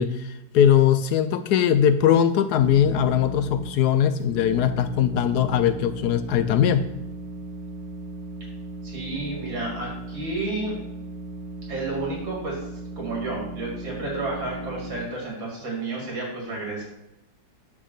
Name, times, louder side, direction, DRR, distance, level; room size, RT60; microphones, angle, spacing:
voice 1, 0.0-6.9, left 9 dB, 70° left, 10 dB, 1.0 m, -20 dB
sound 1, 2.5-3.7 4.2-15.0, right 2 dB, 25° right, 2.2 m, -37 dB
voice 2, 8.8-10.7 11.7-12.6 13.0-16.8, right 2 dB, 80° right, -2 dB, 3.2 m, -31 dB
9.5 x 3.6 x 6.5 m, 0.92 s
omnidirectional pair, 2.1 m